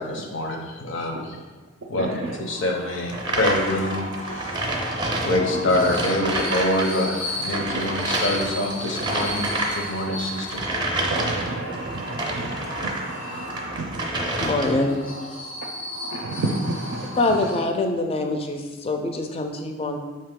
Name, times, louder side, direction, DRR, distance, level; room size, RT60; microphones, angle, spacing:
voice 1, 0.0-1.4 1.9-4.8 5.2-10.6, left 1 dB, 70° left, 2 dB, 0.7 m, -26 dB
voice 2, 2.0-2.4 5.5-5.6 10.1-10.2 11.1-14.8 16.1-17.2, right 2 dB, 80° right, 1 dB, 0.4 m, -31 dB
sound 1, 2.3-18.0, left 1 dB, 85° left, 1.1 m, -36 dB
sound 2, 3.1-6.9 7.2-13.1 13.5-14.9, right 1 dB, 25° right, 0.5 m, -28 dB
voice 3, 14.4-15.4 17.2-20.0, left 2 dB, 30° left, 4 dB, 0.4 m, -25 dB
5.2 x 2.8 x 3.6 m, 1.3 s
head